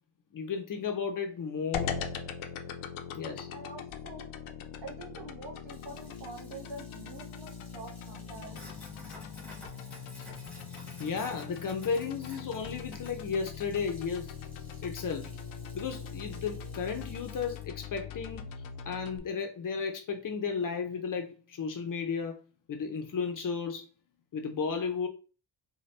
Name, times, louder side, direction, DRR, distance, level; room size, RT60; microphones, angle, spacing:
voice 1, 0.3-1.9 3.1-3.5 10.2-10.3 11.0-14.3 14.8-15.4 15.7-22.4 22.7-23.9 24.3-25.1, left 5 dB, 45° left, 0.6 m, -34 dB
sound 1, 1.7-19.2, left 7 dB, 85° left, 0.6 m, -41 dB
voice 2, 3.5-4.3 4.8-8.7, right 3 dB, 65° right, 1.7 m, -46 dB
Sink (filling or washing), 5.7-17.6, equal, 5° left, 1.0 m, -53 dB
4.1 x 2.2 x 3.2 m
wide cardioid pair, 180°, 47 cm